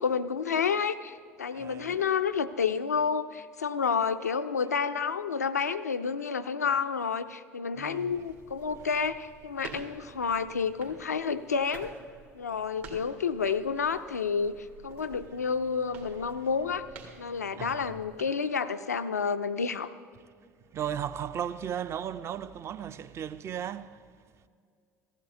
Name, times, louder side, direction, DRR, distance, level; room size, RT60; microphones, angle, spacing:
voice 1, 0.0-11.9 12.3-16.8 17.2-19.9, left 6 dB, 80° left, 0.4 m, -30 dB
voice 2, 1.5-2.0 7.7-8.2 16.4-16.5 17.5-18.0 20.4-24.0, right 9 dB, 30° right, 0.5 m, -36 dB
sound 1, 8.1-18.2, right 4 dB, 65° right, 1.9 m, -50 dB
15.5 x 14.5 x 2.7 m
figure-of-eight pair, 65°, 9 cm